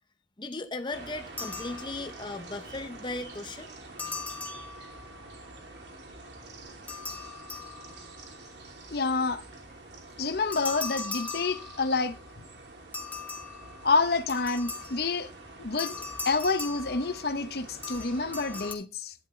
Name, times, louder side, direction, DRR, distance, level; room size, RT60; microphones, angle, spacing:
voice 1, 0.4-3.7, left 2 dB, 25° left, 0.7 m, -37 dB
sound 1, 0.9-18.7, right 2 dB, 70° right, 2.9 m, -47 dB
sound 2, 1.4-2.3 4.0-5.3 6.9-8.3 10.5-12.2 12.9-15.2 15.8-17.5 17.8-18.7, left 4 dB, 10° left, 1.3 m, -39 dB
voice 2, 8.9-9.4 10.2-12.2 13.8-15.3 15.6-19.1, left 3 dB, 55° left, 0.8 m, -28 dB
11.5 x 9.9 x 3.2 m
head